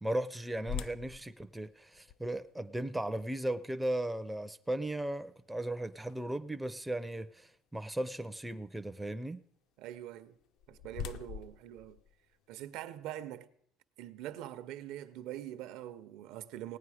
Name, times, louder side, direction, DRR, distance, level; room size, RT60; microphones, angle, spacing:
voice 1, 0.0-9.4, right 1 dB, 5° right, 0.4 m, -36 dB
sound 1, 0.7-6.6 7.2-7.3 7.9-8.1 10.2-12.8, left 8 dB, 60° left, 0.4 m, -46 dB
voice 2, 9.8-10.4 10.7-12.0 12.5-13.5 14.0-16.8, right 12 dB, 70° right, 0.7 m, -43 dB
18.0 x 9.1 x 4.9 m
cardioid pair, 150°, 0 cm